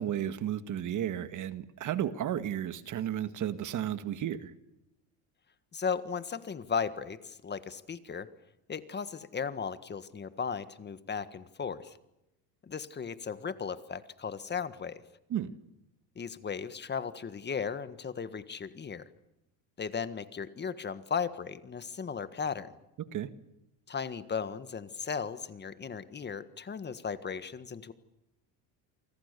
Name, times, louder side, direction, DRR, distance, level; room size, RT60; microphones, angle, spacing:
voice 1, 0.0-4.5 15.3-15.5 23.0-23.3, right 10 dB, 45° right, 12 dB, 1.9 m, -33 dB
voice 2, 5.7-8.3 8.7-12.0 12.6-15.0 16.1-19.1 19.8-22.7 23.9-27.9, left 6 dB, 25° left, 12 dB, 1.6 m, -36 dB
28.5 x 24.5 x 6.9 m, 0.89 s
cardioid pair, 125°, 41 cm